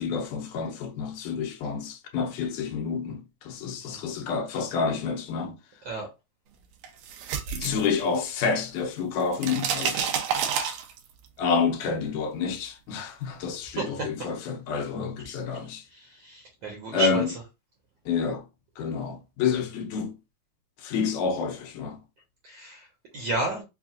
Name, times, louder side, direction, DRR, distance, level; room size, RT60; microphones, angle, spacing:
voice 1, 0.0-5.6 7.5-10.1 11.4-15.8 16.9-17.3 18.1-18.4 18.8-20.1 20.8-22.0, left 5 dB, 75° left, 2.2 m, -29 dB
sound 1, 6.8-8.5 8.8-11.3, right 7 dB, 90° right, 2.3 m, -29 dB
voice 2, 13.6-14.1 15.2-15.3 15.9-17.4 22.4-22.9 23.1-23.6, right 3 dB, 65° right, 1.7 m, -32 dB
5.8 x 2.4 x 2.4 m
omnidirectional pair, 3.8 m